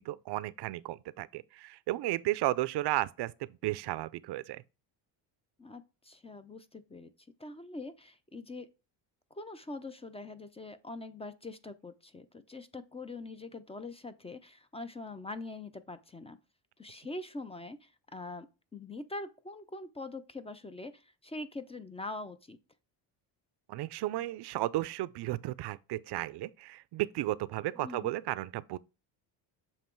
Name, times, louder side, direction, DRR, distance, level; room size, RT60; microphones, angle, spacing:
voice 1, 0.0-4.6 23.7-28.8, right 16 dB, 55° right, 0.5 m, -34 dB
voice 2, 5.6-7.1 7.4-8.7 9.3-16.4 16.8-18.5 18.7-22.6 27.8-28.1, left 2 dB, 15° left, 0.4 m, -43 dB
7.3 x 3.0 x 4.5 m
cardioid pair, 90°, 49 cm